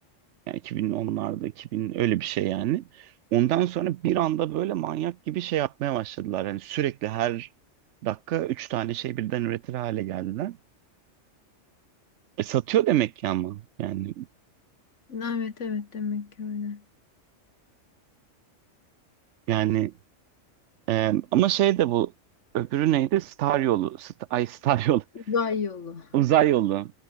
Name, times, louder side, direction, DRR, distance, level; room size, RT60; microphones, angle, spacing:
voice 1, 0.5-7.5 8.0-10.6 12.4-14.3 19.5-19.9 20.9-22.1 22.5-25.0 26.1-26.9, right 13 dB, 75° right, 0.9 m, -26 dB
voice 2, 15.1-16.8 25.3-26.1, left 5 dB, 70° left, 2.0 m, -30 dB
omnidirectional pair, 1.3 m